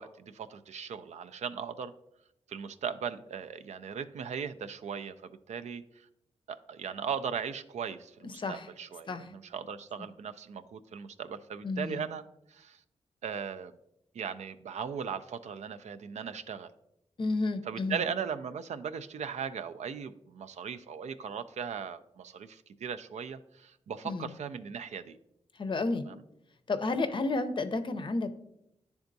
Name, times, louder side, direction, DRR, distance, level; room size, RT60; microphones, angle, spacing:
voice 1, 0.0-1.9 2.5-6.1 6.5-12.2 12.5-12.8 13.2-13.7 14.1-16.7 17.7-25.2 26.1-26.2, right 7 dB, 80° right, 11 dB, 0.4 m, -38 dB
voice 2, 8.4-8.7 9.1-9.3 11.6-12.0 17.2-18.0 24.0-24.3 25.6-26.1 26.7-28.3, left 3 dB, 45° left, 9 dB, 0.5 m, -31 dB
10.5 x 3.5 x 2.6 m, 0.80 s
wide cardioid pair, 95°, 12 cm